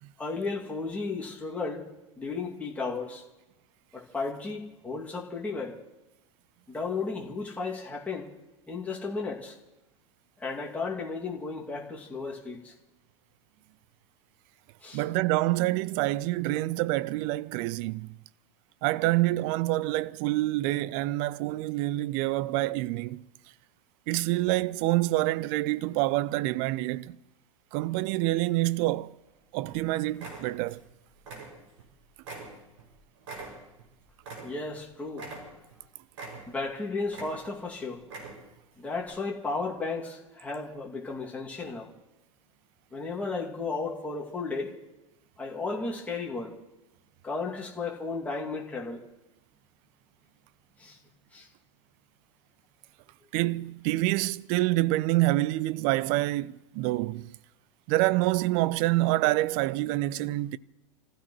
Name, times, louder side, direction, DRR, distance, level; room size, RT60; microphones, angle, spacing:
voice 1, 0.2-1.9 2.2-3.2 3.9-5.8 6.7-8.3 8.7-9.5 10.4-12.7 14.8-15.0 34.4-35.3 36.5-38.0 38.8-41.9 42.9-44.8 45.4-46.5 47.2-49.0 50.8-51.0 51.3-51.5, left 4 dB, 10° left, 2.4 m, -34 dB
voice 2, 14.9-18.1 18.8-23.3 24.1-27.2 27.7-29.1 29.5-30.8 53.3-57.4 57.9-60.6, right 18 dB, 45° right, 0.5 m, -27 dB
sound 1, 28.6-29.3 29.7-29.8 30.1-30.9 31.2-31.9 32.2-34.8 35.1-35.8 36.1-36.7 37.1-37.7 38.0-38.6 39.0-39.1, right 3 dB, 65° right, 6.1 m, -43 dB
28.5 x 15.5 x 3.1 m
figure-of-eight pair, 85°, 17 cm